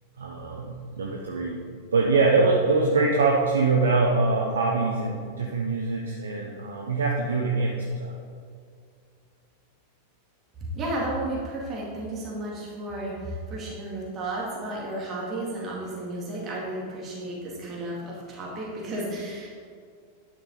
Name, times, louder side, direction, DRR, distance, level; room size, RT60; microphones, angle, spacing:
voice 1, 0.2-1.6 1.9-8.1, right 3 dB, 65° right, -1 dB, 0.9 m, -24 dB
voice 2, 10.7-19.5, right 1 dB, 30° right, -5 dB, 2.4 m, -33 dB
11.0 x 5.9 x 4.1 m, 2.2 s
figure-of-eight pair, 90°, 0 cm